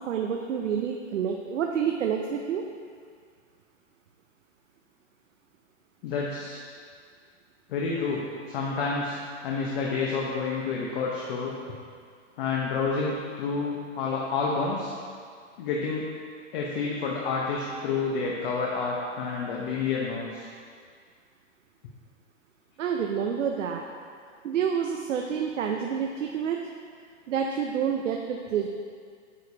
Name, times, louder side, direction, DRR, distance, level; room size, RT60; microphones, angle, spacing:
voice 1, 0.1-2.6 22.8-23.8 24.4-26.7 27.3-28.7, right 7 dB, 85° right, 2 dB, 0.7 m, -28 dB
voice 2, 6.0-6.6 7.7-9.2 9.4-11.5 12.4-14.9 15.6-16.1 16.5-20.5, left 4 dB, 50° left, -3 dB, 1.0 m, -29 dB
9.3 x 6.5 x 2.8 m, 2.1 s
hypercardioid pair, 145°, 37 cm